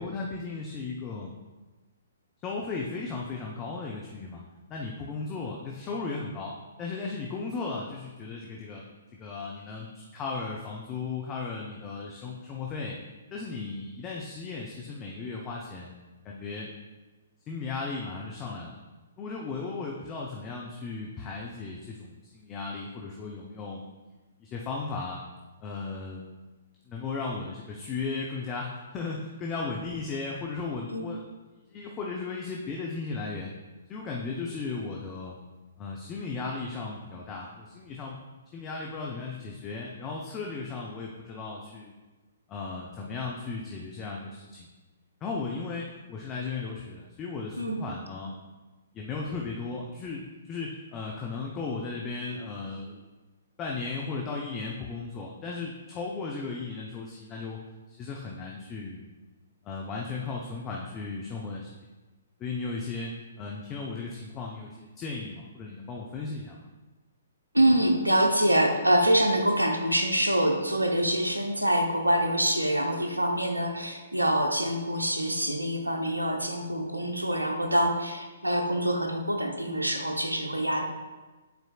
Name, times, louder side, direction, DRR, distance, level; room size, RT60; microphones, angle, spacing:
voice 1, 0.0-1.3 2.4-4.4 4.7-6.5 6.8-8.8 9.1-12.9 13.3-15.9 16.2-16.7 17.5-18.8 19.2-23.8 24.4-25.2 25.6-26.3 26.9-31.2 31.7-33.5 33.9-35.4 35.8-38.2 38.5-41.9 42.5-44.7 45.2-48.3 48.9-53.0 53.6-57.6 57.9-59.1 59.6-61.7 62.4-63.1 63.4-66.6, left 4 dB, 20° left, -2 dB, 0.6 m, -36 dB
voice 2, 67.5-80.8, right 1 dB, 80° right, 4 dB, 0.8 m, -25 dB
9.3 x 4.5 x 2.3 m, 1.2 s
figure-of-eight pair, 125°, 0 cm